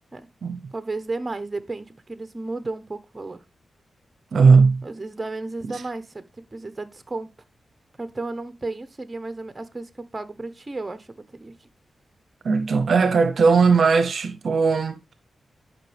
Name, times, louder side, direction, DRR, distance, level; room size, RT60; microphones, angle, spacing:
voice 1, 0.7-3.4 4.8-6.3 6.5-7.3 8.0-11.5, right 3 dB, 25° right, 1.0 m, -33 dB
voice 2, 4.3-4.8 5.7-5.8 12.4-15.0, right 5 dB, 65° right, 0.7 m, -18 dB
11.0 x 5.5 x 3.4 m
cardioid pair, 90°, 0 cm